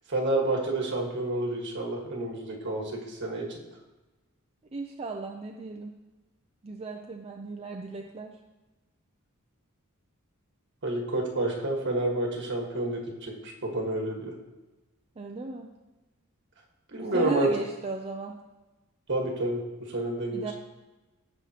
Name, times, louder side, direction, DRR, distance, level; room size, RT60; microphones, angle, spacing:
voice 1, 0.1-3.6 10.8-14.3 16.9-17.5 19.1-19.6 19.9-20.5, right 2 dB, 55° right, 0 dB, 1.7 m, -29 dB
voice 2, 4.7-5.9 6.6-8.3 15.2-15.7 16.9-18.3 20.3-20.5, right 3 dB, 30° right, 2 dB, 0.5 m, -36 dB
16.0 x 5.7 x 2.9 m, 1.1 s
head